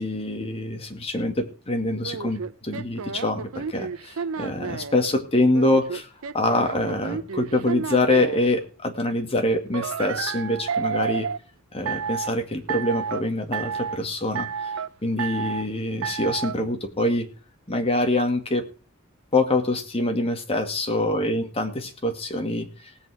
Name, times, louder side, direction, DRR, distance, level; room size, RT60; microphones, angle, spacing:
voice 1, 0.0-6.1 6.3-11.3 11.7-14.5 15.0-17.3 17.7-18.6 19.3-22.9, left 1 dB, 30° left, 5 dB, 2.0 m, -25 dB
sound 1, 2.0-5.0 5.5-8.5 9.7-11.4 11.9-12.3 12.7-13.2 13.5-14.0 14.3-14.9 15.2-15.7 16.0-16.5, right 6 dB, 85° right, 0.6 m, -30 dB
18.0 x 8.3 x 4.8 m, 0.37 s
head